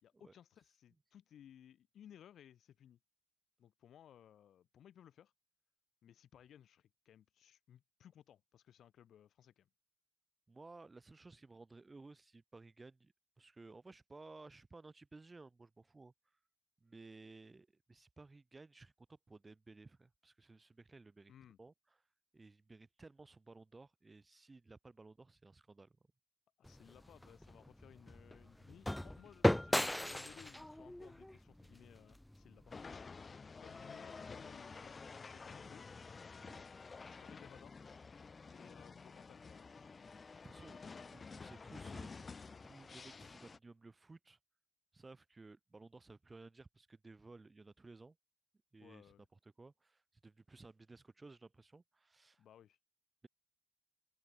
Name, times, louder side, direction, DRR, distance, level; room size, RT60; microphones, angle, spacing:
voice 1, 0.0-3.0 3.6-5.3 6.0-9.7 21.3-21.6 26.6-32.7 33.6-35.8 37.0-37.9 38.5-40.1 40.9-41.3 48.8-49.3 52.4-52.8, left 10 dB, 70° left, 3.4 m, -61 dB
voice 2, 10.5-16.1 16.8-21.3 21.6-21.7 22.3-26.0 36.4-36.6 40.4-42.3 42.6-44.4 44.9-48.2 48.7-52.4, right 3 dB, 25° right, 2.6 m, -57 dB
sound 1, 26.6-32.8, left 1 dB, 10° left, 0.7 m, -38 dB
sound 2, 32.7-43.6, left 4 dB, 35° left, 4.7 m, -51 dB
open air
cardioid pair, 75°, 0 cm